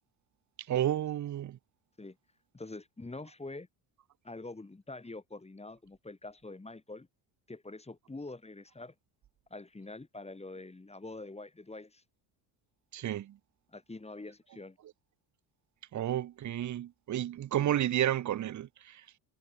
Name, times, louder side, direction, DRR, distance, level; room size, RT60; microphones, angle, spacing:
voice 1, 0.7-1.6 12.9-13.4 15.9-19.0, right 11 dB, 40° right, 0.7 m, -31 dB
voice 2, 2.5-3.7 4.2-7.1 7.5-8.9 9.5-12.0 13.7-14.8, left 2 dB, 15° left, 2.0 m, -45 dB
cardioid pair, 85°, 44 cm